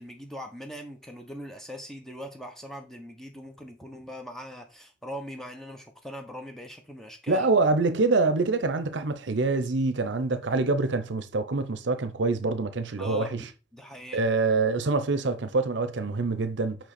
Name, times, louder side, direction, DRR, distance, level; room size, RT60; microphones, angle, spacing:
voice 1, 0.0-7.5 13.0-14.2, equal, ahead, 1.1 m, -41 dB
voice 2, 7.3-13.5 14.1-16.8, right 3 dB, 70° right, 0.7 m, -25 dB
5.7 x 5.6 x 4.3 m
head